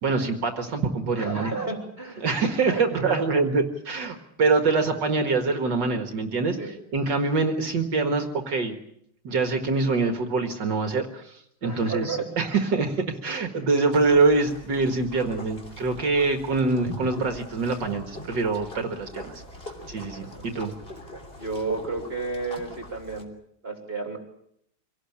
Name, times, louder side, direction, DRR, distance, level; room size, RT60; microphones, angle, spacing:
voice 1, 0.0-1.5 2.2-8.8 9.2-19.4 19.9-20.7, right 3 dB, 60° right, 6 dB, 2.2 m, -25 dB
voice 2, 1.1-2.3 2.7-3.3 4.1-4.2 6.6-6.8 11.6-12.3 19.8-19.9 20.2-20.4 21.4-23.3 23.6-24.2, right 3 dB, 30° right, 3 dB, 3.4 m, -32 dB
sound 1, 13.9-23.2, equal, 25° left, 3.4 m, -42 dB
25.0 x 18.0 x 8.6 m, 0.73 s
omnidirectional pair, 2.2 m